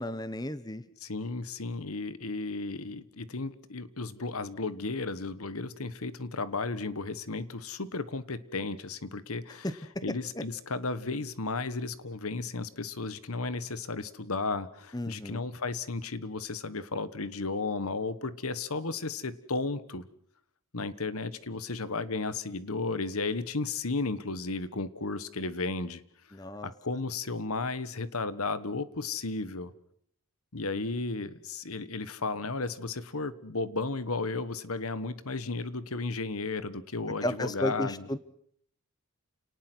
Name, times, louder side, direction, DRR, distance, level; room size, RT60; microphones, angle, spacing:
voice 1, 0.0-0.8 9.6-9.7 10.4-10.5 14.9-15.5 26.3-26.7 37.2-38.2, left 1 dB, 20° left, 14 dB, 1.0 m, -33 dB
voice 2, 1.0-9.7 10.0-20.1 20.7-26.0 26.6-29.7 30.5-38.1, left 3 dB, 80° left, 15 dB, 1.3 m, -34 dB
29.5 x 19.0 x 6.2 m, 0.64 s
head